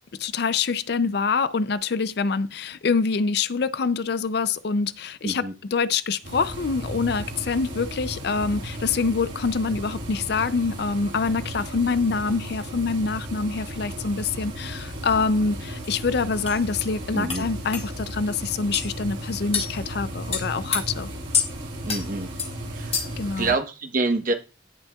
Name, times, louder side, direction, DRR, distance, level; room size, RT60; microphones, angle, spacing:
voice 1, 0.2-21.1 23.2-23.5, left 4 dB, 55° left, 0.4 m, -25 dB
voice 2, 5.2-5.5 17.1-17.4 21.8-22.3 22.7-23.1 23.4-24.3, right 3 dB, 45° right, 1.1 m, -26 dB
sound 1, 6.2-23.5, equal, 70° right, 3.1 m, -35 dB
sound 2, 15.8-15.9 16.5-16.6 17.3-17.4 17.7-17.9 18.7-18.9 19.5-19.7 20.3-20.8 21.3-21.5 21.9-22.0 22.4-22.5 22.9-23.2, left 6 dB, 30° left, 1.7 m, -26 dB
16.0 x 5.5 x 2.3 m
head